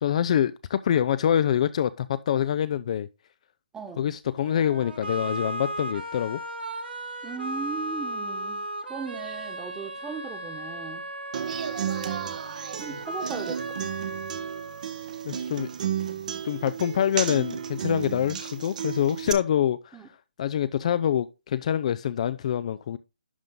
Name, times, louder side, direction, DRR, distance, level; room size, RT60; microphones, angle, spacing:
voice 1, 0.0-3.1 4.0-6.4 12.9-13.0 15.2-15.7 16.4-20.0 20.4-23.0, left 9 dB, 40° left, 0.4 m, -25 dB
sound 1, 4.4-15.4, right 1 dB, 85° right, 1.9 m, -36 dB
voice 2, 7.2-11.0 12.8-13.8 19.9-20.1, right 5 dB, 10° right, 1.2 m, -38 dB
Human voice / Acoustic guitar, 11.3-19.3, right 8 dB, 50° right, 0.9 m, -33 dB
11.0 x 3.8 x 3.6 m
figure-of-eight pair, 145°, 5 cm